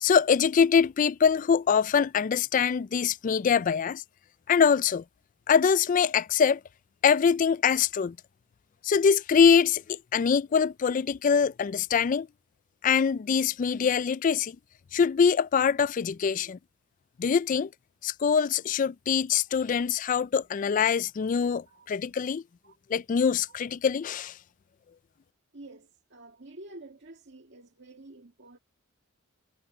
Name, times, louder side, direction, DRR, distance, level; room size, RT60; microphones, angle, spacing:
voice 1, 0.0-4.0 4.5-5.0 5.5-6.6 7.0-8.2 8.8-12.3 12.8-14.6 14.9-16.6 17.2-17.7 18.0-22.4 22.9-24.3, left 6 dB, 40° left, 0.3 m, -24 dB
voice 2, 25.5-28.6, right 2 dB, 55° right, 2.1 m, -49 dB
head